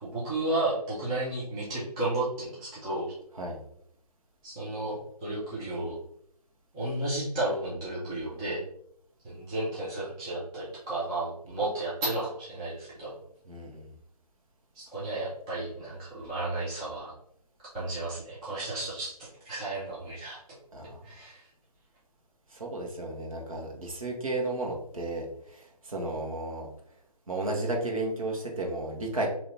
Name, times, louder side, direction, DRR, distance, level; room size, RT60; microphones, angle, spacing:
voice 1, 0.0-3.1 4.4-6.0 6.7-8.6 9.2-13.2 14.7-17.1 17.7-20.4 21.0-21.5, right 2 dB, 10° right, -9 dB, 0.5 m, -33 dB
voice 2, 13.5-13.9 20.7-21.0 22.5-26.7 27.3-29.3, right 2 dB, 60° right, -1 dB, 1.3 m, -33 dB
3.8 x 2.8 x 4.3 m, 0.70 s
figure-of-eight pair, 150°, 20 cm